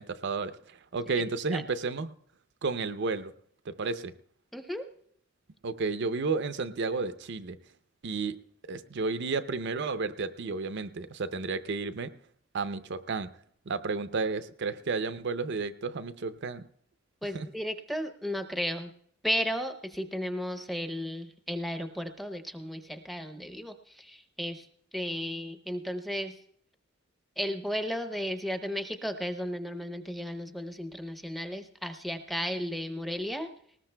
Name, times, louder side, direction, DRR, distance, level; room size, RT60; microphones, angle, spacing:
voice 1, 0.0-2.1 2.6-3.3 3.7-4.1 5.6-7.6 8.0-8.4 8.6-12.1 12.5-13.3 13.7-16.6 17.3-17.5, right 4 dB, 55° right, 11 dB, 0.5 m, -32 dB
voice 2, 4.5-4.9 17.2-18.9 19.2-24.7 24.9-26.4 27.4-33.5, equal, ahead, 7 dB, 0.7 m, -34 dB
19.0 x 19.0 x 2.2 m, 0.64 s
head